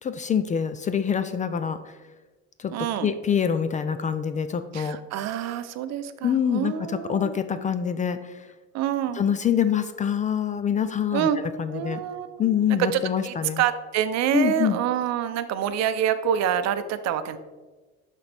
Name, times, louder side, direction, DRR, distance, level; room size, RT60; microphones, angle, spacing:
voice 1, 0.0-1.9 2.6-2.7 3.0-5.0 6.2-8.5 9.2-12.0 12.4-13.6 14.3-14.8, left 8 dB, 25° left, 11 dB, 0.4 m, -25 dB
voice 2, 2.7-3.1 4.7-7.4 8.7-9.2 11.1-11.4 11.7-17.4, right 9 dB, 60° right, 11 dB, 0.6 m, -27 dB
11.0 x 4.2 x 3.3 m, 1.2 s
supercardioid pair, 105°, 31 cm